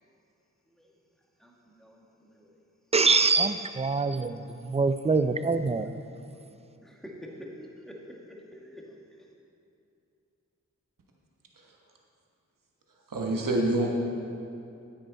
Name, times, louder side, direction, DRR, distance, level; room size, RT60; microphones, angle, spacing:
voice 1, 0.7-1.0 1.4-2.5 6.3-9.3, equal, ahead, -2 dB, 1.7 m, -47 dB
voice 2, 2.9-5.9, right 4 dB, 20° right, 11 dB, 0.4 m, -24 dB
voice 3, 13.1-13.9, right 2 dB, 75° right, 0 dB, 1.2 m, -26 dB
9.6 x 8.9 x 4.1 m, 2.6 s
cardioid pair, 40°, 33 cm